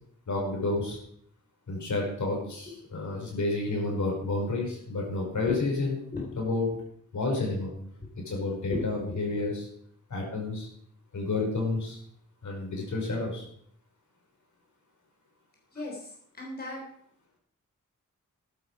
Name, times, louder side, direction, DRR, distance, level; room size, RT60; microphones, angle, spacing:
voice 1, 0.3-1.0 1.7-6.0 6.4-6.7 7.1-7.7 8.2-9.7 10.1-10.7 11.1-12.0 12.4-13.5, left 2 dB, 65° left, -1 dB, 5.2 m, -30 dB
voice 2, 8.4-8.8 9.1-9.2 15.7-16.8, left 3 dB, 30° left, -2 dB, 3.7 m, -37 dB
13.0 x 11.0 x 4.9 m, 0.66 s
wide cardioid pair, 125°, 32 cm